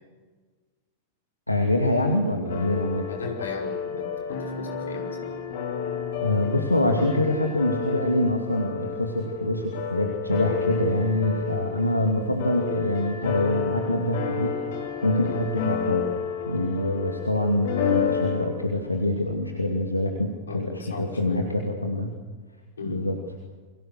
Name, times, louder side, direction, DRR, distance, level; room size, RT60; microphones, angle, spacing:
voice 1, 1.5-3.1 6.2-14.6 15.0-16.1 16.5-22.2 22.8-23.2, left 1 dB, 85° left, 3 dB, 2.6 m, -25 dB
sound 1, 2.5-18.5, left 7 dB, 55° left, 5.4 m, -31 dB
voice 2, 3.1-5.3 15.3-15.4 20.5-21.5 22.8-23.1, left 4 dB, 70° left, 3 dB, 5.5 m, -37 dB
30.0 x 23.5 x 6.7 m, 1.4 s
figure-of-eight pair, 90°, 0 cm